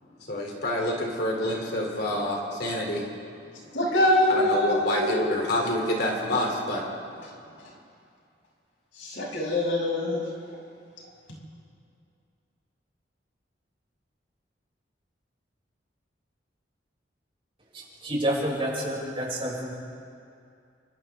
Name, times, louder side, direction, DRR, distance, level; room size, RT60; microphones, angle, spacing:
voice 1, 0.2-3.0 3.5-3.6 4.3-6.8, left 1 dB, 60° left, 0 dB, 3.0 m, -27 dB
voice 2, 3.7-5.2 9.0-10.2, left 1 dB, 90° left, -3 dB, 6.7 m, -24 dB
voice 3, 17.7-19.7, right 1 dB, 30° right, -4 dB, 6.0 m, -29 dB
30.0 x 25.0 x 3.6 m, 2.5 s
head